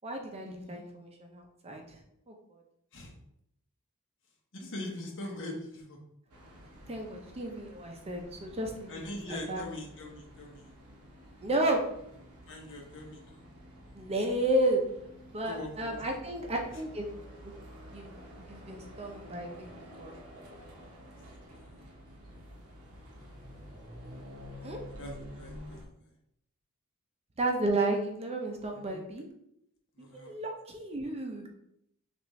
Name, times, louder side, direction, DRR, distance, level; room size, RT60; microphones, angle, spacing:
voice 1, 0.0-2.0 2.3-2.6 6.9-9.6 11.4-11.8 13.9-14.8 15.2-17.1 17.4-17.5 17.9-19.7 20.0-20.1 24.6-24.8 27.4-29.2 30.1-31.5, right 1 dB, 30° right, 2 dB, 0.6 m, -32 dB
voice 2, 4.5-6.0 8.9-10.6 12.5-13.4 15.5-16.0 21.5-21.9 25.0-25.8 28.7-29.0 30.0-30.3, left 1 dB, 60° left, 0 dB, 1.1 m, -42 dB
sound 1, 6.3-25.9, equal, 85° right, 0.9 m, -50 dB
5.8 x 2.6 x 3.1 m, 0.76 s
head